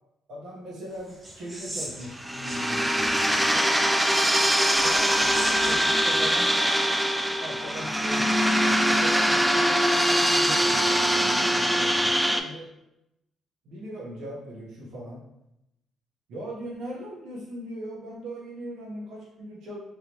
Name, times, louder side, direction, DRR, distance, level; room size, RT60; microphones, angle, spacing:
voice 1, 0.3-3.7 4.8-6.5 7.4-8.4 8.7-12.7 13.6-15.2 16.3-19.8, right 1 dB, 80° right, -4 dB, 1.3 m, -39 dB
sound 1, 0.9-8.4, right 1 dB, 20° right, 1.0 m, -43 dB
sound 2, 2.1-12.4, equal, 5° right, 0.4 m, -23 dB
3.6 x 3.2 x 3.1 m, 0.84 s
cardioid pair, 90°, 0 cm